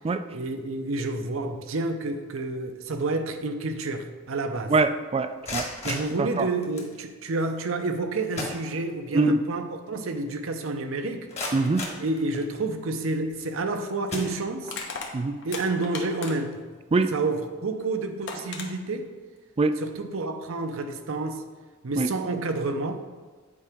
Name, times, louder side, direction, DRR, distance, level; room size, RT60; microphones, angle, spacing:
voice 1, 0.3-4.7 5.8-11.3 12.0-14.7 15.4-16.6 17.1-19.1 19.8-21.4 21.8-23.0, right 2 dB, 75° right, 0.6 m, -29 dB
voice 2, 4.7-6.5 9.1-9.4 11.5-11.8 15.1-15.4 16.9-17.1 19.6-19.7 22.0-22.1, right 3 dB, 30° right, 0.3 m, -24 dB
sound 1, 5.2-7.0 7.9-8.0 8.3-9.2 9.6-9.7 10.2-10.3 10.9-12.8 13.4-13.6 14.1-14.9, left 2 dB, 30° left, 1.3 m, -37 dB
Crushing, 13.3-13.4 14.6-16.6 17.8-17.9 18.3-18.7, left 5 dB, 60° left, 1.0 m, -36 dB
8.4 x 4.9 x 3.5 m
head